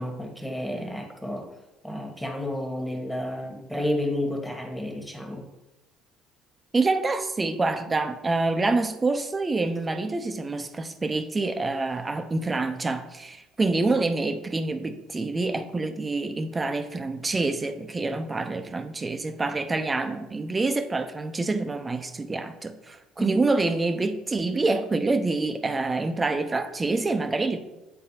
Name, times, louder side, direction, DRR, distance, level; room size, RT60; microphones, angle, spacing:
voice 1, 0.0-1.5 1.8-5.5 23.2-23.4, left 1 dB, ahead, 1.3 m, -31 dB
voice 2, 6.7-27.6, right 3 dB, 25° right, 0.7 m, -26 dB
8.8 x 3.9 x 2.8 m
hypercardioid pair, 65°, 0 cm